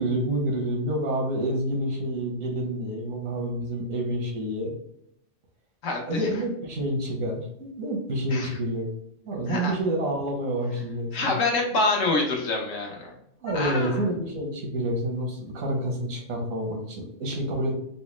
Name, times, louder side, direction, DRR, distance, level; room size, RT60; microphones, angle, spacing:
voice 1, 0.0-4.7 6.1-8.9 9.2-11.4 13.4-17.8, right 1 dB, 85° right, 1 dB, 1.3 m, -28 dB
voice 2, 5.8-6.3 8.3-8.5 9.5-9.7 11.1-13.1 13.5-14.0, left 3 dB, 75° left, 0 dB, 1.2 m, -26 dB
4.0 x 2.1 x 3.0 m, 0.75 s
omnidirectional pair, 1.4 m